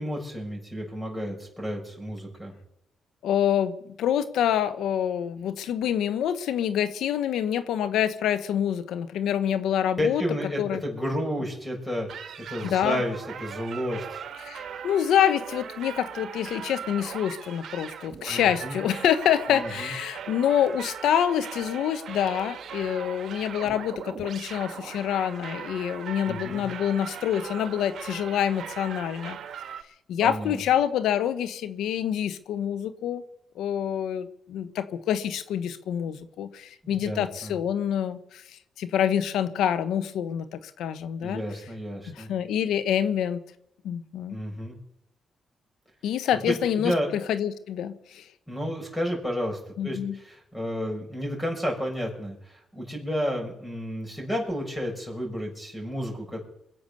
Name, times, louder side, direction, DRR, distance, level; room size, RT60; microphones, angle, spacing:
voice 1, 0.0-2.5 10.0-14.3 18.3-18.8 19.5-19.9 26.3-26.6 30.2-30.6 36.8-37.5 41.2-42.3 44.3-44.8 46.4-47.1 48.5-56.4, equal, 15° left, 2 dB, 7.1 m, -31 dB
voice 2, 3.2-10.2 10.6-10.8 12.6-13.0 14.4-29.4 30.1-33.2 33.6-38.4 38.8-41.4 42.1-43.4 43.8-44.4 46.0-48.2 49.8-50.2, left 9 dB, 80° left, 12 dB, 1.1 m, -26 dB
sound 1, 12.1-29.8, right 8 dB, 65° right, 1.3 m, -39 dB
23.0 x 7.9 x 6.9 m, 0.80 s
supercardioid pair, 55°, 0 cm